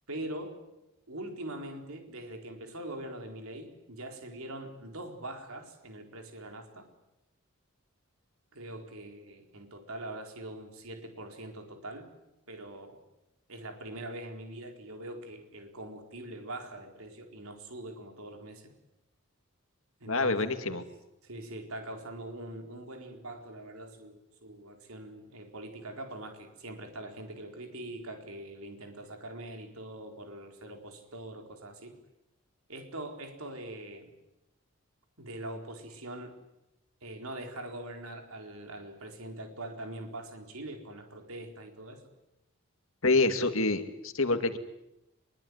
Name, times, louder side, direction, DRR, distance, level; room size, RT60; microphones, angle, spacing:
voice 1, 0.1-0.6 1.1-6.9 8.5-12.1 12.5-13.0 13.5-18.7 20.0-20.3 20.7-20.9 21.2-31.9 32.7-34.1 35.2-36.3 37.0-42.0, right 1 dB, 80° right, 4 dB, 4.4 m, -43 dB
voice 2, 20.1-20.8 43.0-44.6, left 3 dB, 70° left, 8 dB, 2.2 m, -27 dB
24.0 x 22.5 x 9.6 m, 0.90 s
head